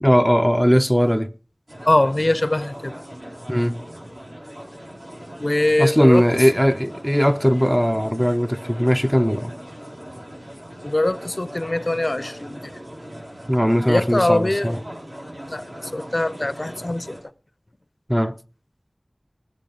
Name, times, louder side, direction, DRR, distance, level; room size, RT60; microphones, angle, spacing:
voice 1, 0.0-1.3 3.5-3.8 5.8-9.5 13.5-14.8 18.1-18.4, equal, ahead, 0.5 m, -19 dB
sound 1, 1.7-17.2, equal, 65° right, 5.4 m, -39 dB
voice 2, 1.9-3.0 5.4-6.2 10.8-12.6 13.9-14.8 15.5-17.2, left 1 dB, 50° left, 0.5 m, -22 dB
19.0 x 7.7 x 5.0 m
wide cardioid pair, 40°, 0 cm